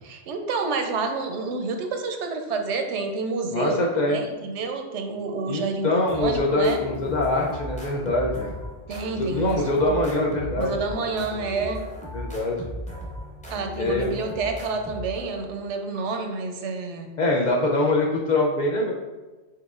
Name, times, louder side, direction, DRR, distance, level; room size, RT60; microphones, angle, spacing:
voice 1, 0.0-3.8 4.1-6.8 8.9-9.9 10.5-11.8 13.5-17.1, right 4 dB, 90° right, 5 dB, 0.9 m, -29 dB
voice 2, 3.5-4.2 5.5-8.6 9.2-10.7 11.0-11.2 12.1-12.6 13.8-14.1 17.2-18.9, left 2 dB, 60° left, -1 dB, 0.5 m, -24 dB
sound 1, 6.1-15.6, equal, 10° left, 0.6 m, -37 dB
4.6 x 3.9 x 2.4 m, 1.2 s
omnidirectional pair, 1.2 m